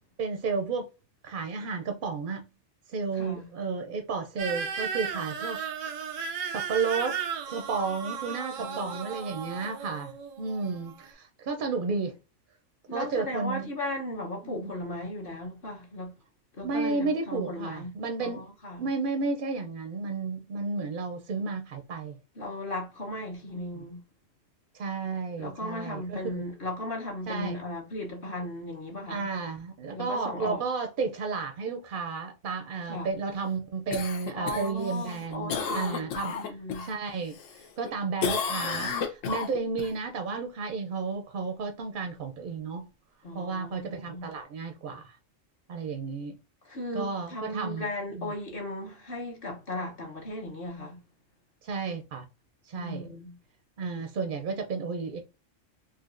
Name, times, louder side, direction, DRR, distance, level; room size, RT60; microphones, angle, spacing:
voice 1, 0.2-0.9 1.2-2.5 2.9-5.6 6.5-7.2 7.5-12.1 12.9-13.7 14.4-14.7 16.6-18.4 18.8-22.2 23.5-23.8 24.7-26.4 27.3-27.6 29.1-36.4 36.8-37.4 37.8-42.9 43.3-45.2 45.7-46.3 46.9-47.8 48.1-48.3 51.6-52.2 52.7-53.1 53.8-55.2, right 4 dB, 60° right, 0.5 m, -32 dB
voice 2, 3.1-3.5 8.6-9.0 9.2-9.3 12.9-16.1 16.6-17.9 18.2-18.9 22.4-24.0 25.4-29.3 29.9-30.6 32.8-33.1 34.4-36.9 43.2-44.3 46.6-51.0 52.7-53.3, left 1 dB, 50° left, 1.1 m, -36 dB
sound 1, 4.4-11.1, right 6 dB, 90° right, 1.0 m, -35 dB
Cough, 33.9-36.9 37.3-37.9 38.2-39.9 44.3-44.4, left 6 dB, 80° left, 1.1 m, -32 dB
4.1 x 2.5 x 2.4 m
omnidirectional pair, 1.3 m